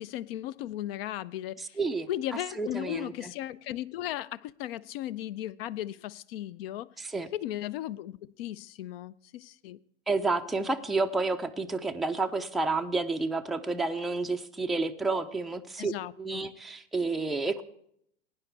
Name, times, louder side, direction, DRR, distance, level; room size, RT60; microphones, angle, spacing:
voice 1, 0.0-1.8 2.1-6.9 7.3-9.8 15.8-16.5, left 13 dB, 50° left, 20 dB, 0.5 m, -36 dB
voice 2, 1.6-2.1 2.6-3.3 7.0-7.3 10.1-15.9 16.2-17.6, right 3 dB, ahead, 5 dB, 0.4 m, -30 dB
17.0 x 9.7 x 3.2 m, 0.69 s
figure-of-eight pair, 95°, 37 cm